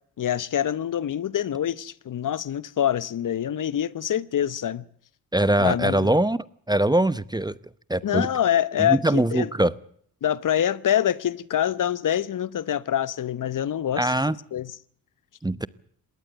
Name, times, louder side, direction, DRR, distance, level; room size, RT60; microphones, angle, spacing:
voice 1, 0.2-4.8 5.6-6.1 8.0-9.5 10.2-14.1 14.5-14.7, left 10 dB, 50° left, 1.0 m, -25 dB
voice 2, 5.3-6.4 6.7-7.5 7.9-8.3 8.8-9.7 14.0-14.4 15.4-15.7, right 1 dB, 10° right, 0.9 m, -22 dB
21.0 x 18.0 x 7.9 m
hypercardioid pair, 50°, 41 cm